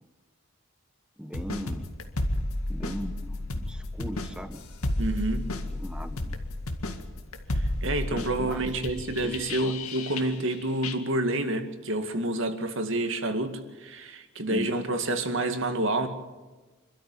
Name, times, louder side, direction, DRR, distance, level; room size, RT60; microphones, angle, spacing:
voice 1, 1.2-1.9 2.3-2.4 2.7-4.6 5.8-6.4 8.4-8.6 9.2-9.7 14.5-14.8, equal, 5° right, 9 dB, 1.2 m, -38 dB
sound 1, 1.3-10.5 10.8-10.9, left 1 dB, 90° left, 2.1 m, -32 dB
voice 2, 5.0-5.5 7.5-16.1, right 1 dB, 60° right, 7 dB, 2.3 m, -28 dB
26.5 x 13.0 x 9.3 m, 1.2 s
head